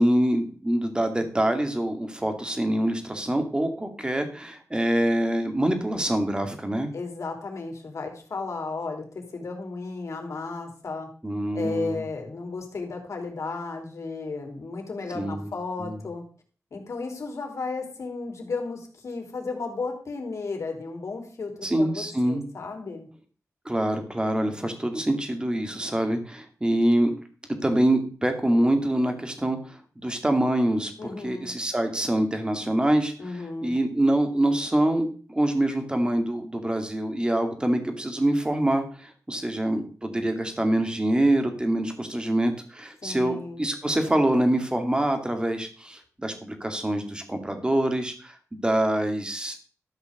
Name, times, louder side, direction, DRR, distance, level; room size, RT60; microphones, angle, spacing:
voice 1, 0.0-6.9 11.2-12.0 15.1-15.5 15.8-16.0 21.6-22.5 23.7-27.1 27.6-33.1 33.6-49.6, right 1 dB, 15° right, 6 dB, 2.3 m, -25 dB
voice 2, 6.9-11.1 11.5-16.2 16.7-23.1 31.0-31.5 33.2-33.7 43.0-43.6, left 4 dB, 65° left, 3 dB, 3.3 m, -34 dB
13.0 x 5.9 x 6.6 m, 0.41 s
wide cardioid pair, 95°, 5 cm